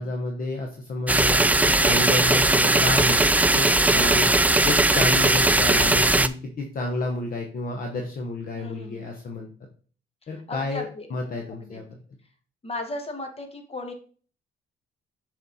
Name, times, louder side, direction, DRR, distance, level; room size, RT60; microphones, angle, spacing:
voice 1, 0.0-3.2 3.5-4.3 4.6-9.5 10.3-12.0, left 2 dB, 45° left, 2 dB, 1.1 m, -30 dB
sound 1, 1.1-6.3, right 2 dB, 10° right, 0.3 m, -19 dB
voice 2, 3.9-4.4 8.5-9.1 10.5-11.1 11.6-11.8 12.6-13.9, left 2 dB, 30° left, 4 dB, 1.7 m, -35 dB
6.5 x 4.4 x 4.1 m, 0.42 s
cardioid pair, 90°, 20 cm